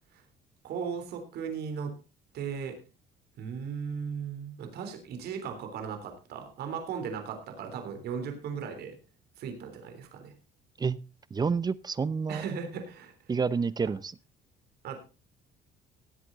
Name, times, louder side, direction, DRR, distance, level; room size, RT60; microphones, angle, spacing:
voice 1, 0.6-1.9 2.3-2.8 3.4-9.0 9.4-10.3 12.3-13.1 13.8-13.9 14.8-15.0, right 6 dB, 70° right, 6 dB, 3.4 m, -37 dB
voice 2, 11.3-12.4 13.3-14.1, right 5 dB, 25° right, 19 dB, 0.6 m, -29 dB
18.0 x 8.3 x 3.9 m, 0.31 s
cardioid pair, 110°, 17 cm